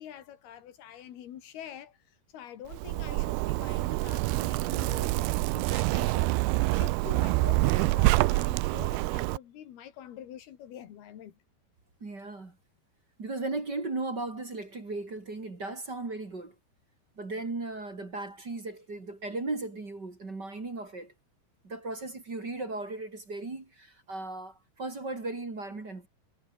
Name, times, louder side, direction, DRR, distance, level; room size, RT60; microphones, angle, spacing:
voice 1, 0.0-11.4, left 10 dB, 75° left, 3.8 m, -46 dB
Zipper (clothing), 2.7-9.4, right 21 dB, 85° right, 2.6 m, -26 dB
voice 2, 12.0-12.6 13.2-16.6 17.2-21.1 21.6-26.1, right 2 dB, 25° right, 3.6 m, -36 dB
omnidirectional pair, 4.6 m